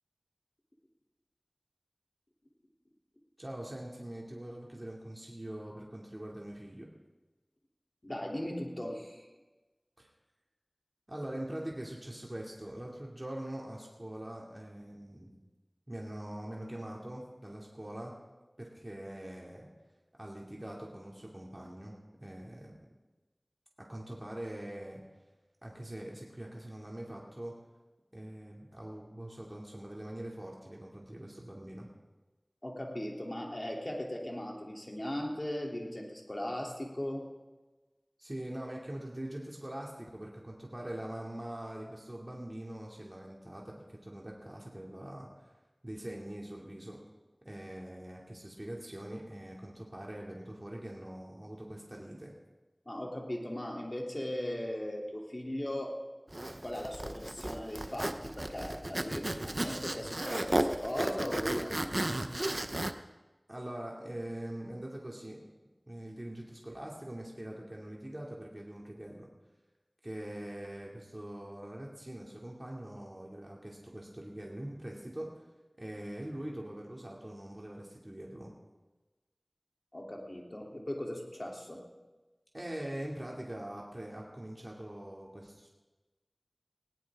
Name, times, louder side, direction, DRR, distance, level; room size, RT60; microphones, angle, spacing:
voice 1, 3.4-6.9 10.0-10.1 11.1-15.3 15.9-18.1 18.6-19.7 20.1-21.9 22.2-22.7 23.8-25.0 25.6-27.5 28.1-31.9 38.2-45.5 45.8-47.0 47.4-52.3 63.5-65.4 65.9-69.3 70.0-75.4 75.8-78.5 82.5-85.7, right 1 dB, 35° right, -2 dB, 2.7 m, -43 dB
voice 2, 8.0-9.3 32.6-37.3 52.8-56.0 56.3-61.9 79.9-81.8, left 1 dB, 45° left, -1 dB, 3.2 m, -38 dB
Zipper (clothing), 56.3-62.9, right 1 dB, 50° right, 0.8 m, -34 dB
19.5 x 18.0 x 3.7 m, 1.2 s
wide cardioid pair, 40°, 0 cm